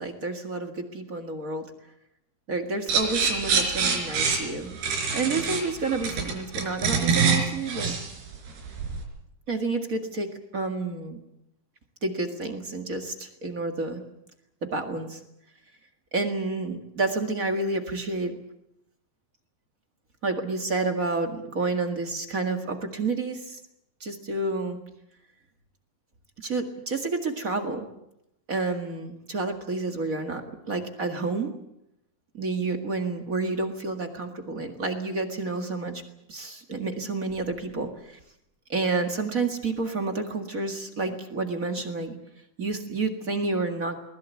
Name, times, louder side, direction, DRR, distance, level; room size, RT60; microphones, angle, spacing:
voice 1, 0.0-1.6 2.5-4.8 5.1-7.9 9.5-11.2 12.0-14.0 14.6-15.2 16.1-18.3 20.2-23.6 24.0-24.8 26.4-27.9 28.5-31.5 32.3-36.0 36.3-38.2 38.7-42.1 42.6-43.9, right 3 dB, 40° right, 5 dB, 1.2 m, -29 dB
sound 1, 2.9-9.0, right 5 dB, 90° right, 6.3 m, -25 dB
21.0 x 20.5 x 8.3 m, 0.83 s
omnidirectional pair, 4.5 m